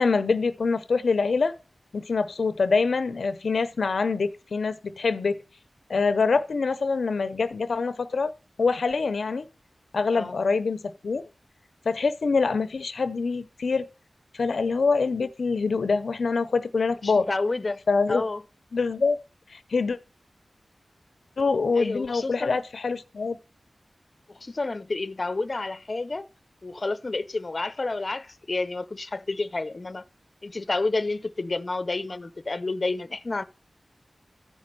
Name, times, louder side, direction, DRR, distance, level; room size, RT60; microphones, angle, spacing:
voice 1, 0.0-1.6 1.9-5.4 5.9-8.3 8.6-9.5 9.9-11.2 11.9-13.9 14.3-17.3 17.9-18.2 18.7-19.2 19.5-20.0 21.4-23.4, left 4 dB, 90° left, 0.6 m, -25 dB
voice 2, 17.0-17.8 18.1-18.4 21.8-22.6 24.3-26.3 26.6-30.0 30.4-33.4, left 3 dB, 45° left, 0.7 m, -30 dB
14.0 x 5.3 x 7.5 m
wide cardioid pair, 75°, 0 cm